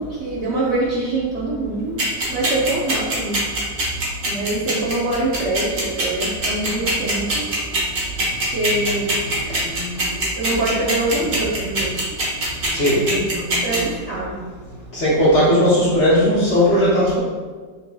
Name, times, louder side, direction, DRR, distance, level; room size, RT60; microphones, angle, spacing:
voice 1, 0.0-2.0 2.3-3.4 4.2-7.5 8.5-9.6 10.4-12.0 12.6-13.2 13.5-14.3, right 2 dB, 90° right, -7 dB, 0.6 m, -24 dB
sound 1, 2.0-13.8, right 2 dB, 55° right, 1.5 m, -22 dB
voice 2, 9.5-10.0 10.7-10.9 12.7-13.8 14.9-17.2, equal, 50° left, -7 dB, 0.9 m, -18 dB
5.7 x 2.7 x 2.2 m, 1.4 s
omnidirectional pair, 2.1 m